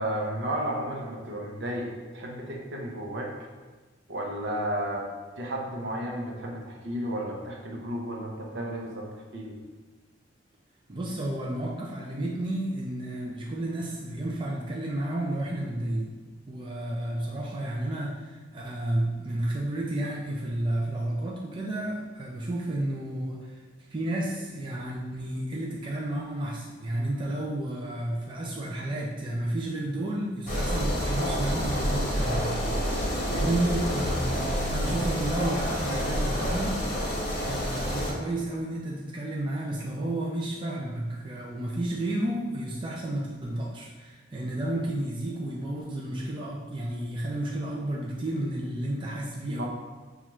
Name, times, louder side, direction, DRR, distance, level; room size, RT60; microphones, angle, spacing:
voice 1, 0.0-3.3 4.1-9.1 9.3-9.6 49.5-49.6, right 1 dB, 65° right, 0 dB, 0.7 m, -33 dB
voice 2, 10.9-16.2 16.5-23.6 23.9-36.8 37.1-49.6, right 1 dB, 25° right, -4 dB, 0.4 m, -32 dB
sound 1, 30.5-38.1, equal, 40° left, 0.9 m, -28 dB
5.6 x 2.4 x 3.0 m, 1.3 s
head